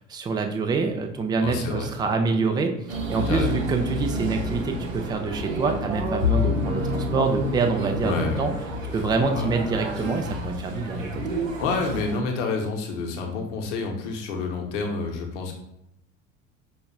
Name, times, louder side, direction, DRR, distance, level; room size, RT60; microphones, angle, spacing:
voice 1, 0.0-8.5 8.9-11.2, right 4 dB, 10° right, 4 dB, 0.4 m, -26 dB
voice 2, 1.4-1.9 3.3-3.6 8.0-8.5 9.3-9.5 11.6-15.5, left 4 dB, 65° left, 2 dB, 0.8 m, -28 dB
sound 1, 2.9-12.2, left 1 dB, 80° right, 0.7 m, -29 dB
5.6 x 2.4 x 2.3 m, 0.83 s
figure-of-eight pair, 65°, 39 cm